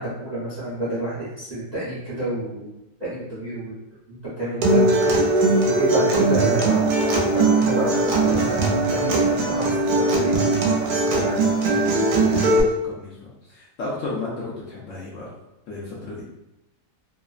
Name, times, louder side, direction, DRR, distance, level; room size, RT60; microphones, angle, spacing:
voice 1, 0.0-3.8 4.1-5.1 5.4-6.9 7.2-10.4 10.7-11.9, right 1 dB, 40° right, -9 dB, 0.6 m, -29 dB
Acoustic guitar, 4.6-12.6, right 2 dB, 80° right, 1.1 m, -20 dB
voice 2, 5.4-5.8 12.3-15.3 15.7-16.2, left 2 dB, 65° left, -5 dB, 0.9 m, -34 dB
3.0 x 2.0 x 2.3 m, 0.93 s
omnidirectional pair, 1.7 m